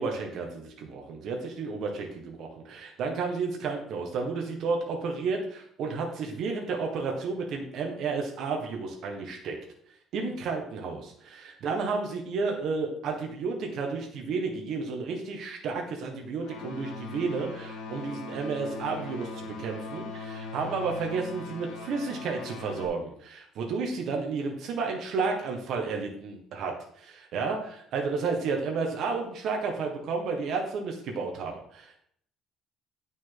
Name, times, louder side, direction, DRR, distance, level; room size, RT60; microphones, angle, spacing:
voice 1, 0.0-9.6 10.1-32.0, right 4 dB, 55° right, 1 dB, 1.5 m, -32 dB
sound 1, 16.4-22.9, left 3 dB, 80° left, 1.3 m, -40 dB
9.5 x 6.2 x 4.0 m, 0.64 s
cardioid pair, 160°, 0 cm